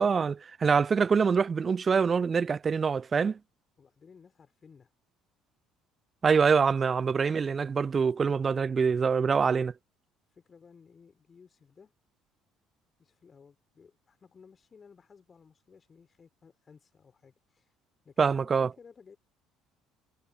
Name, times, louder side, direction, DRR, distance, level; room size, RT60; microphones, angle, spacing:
voice 1, 0.0-3.4 6.2-9.7 18.2-18.7, right 5 dB, 30° right, 0.5 m, -25 dB
voice 2, 3.8-4.9 10.3-11.9 13.0-17.8 18.0-19.2, left 6 dB, 30° left, 4.2 m, -57 dB
figure-of-eight pair, 55°, 0 cm